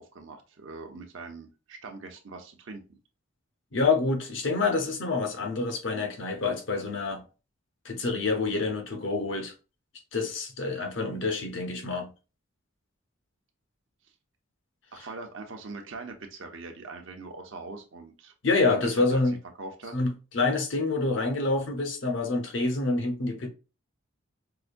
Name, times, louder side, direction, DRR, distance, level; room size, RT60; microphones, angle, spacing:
voice 1, 0.0-3.0 14.9-18.3 19.6-19.9, right 3 dB, 65° right, 0.7 m, -42 dB
voice 2, 3.7-7.2 7.8-9.5 10.1-12.1 15.0-15.1 18.4-19.4 19.9-23.5, left 3 dB, 60° left, 0.8 m, -27 dB
4.8 x 2.2 x 2.5 m
head